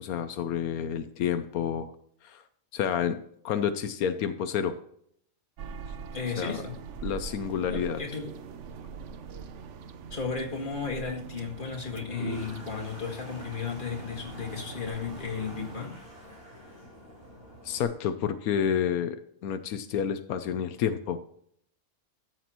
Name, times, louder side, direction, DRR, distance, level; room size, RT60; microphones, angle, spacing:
voice 1, 0.0-1.9 2.2-2.4 2.7-3.2 3.4-4.7 6.4-6.6 7.0-8.0 17.6-19.2 19.4-21.2, left 8 dB, 85° left, 10 dB, 1.1 m, -29 dB
sound 1, 5.6-15.8, right 5 dB, 60° right, 1.0 m, -43 dB
voice 2, 6.1-6.8 7.6-8.4 10.1-16.0, left 5 dB, 35° left, 1 dB, 2.0 m, -34 dB
Toilet flush, 11.7-17.8, right 1 dB, 40° right, 3.7 m, -44 dB
13.5 x 7.7 x 3.0 m, 0.67 s
omnidirectional pair, 1.5 m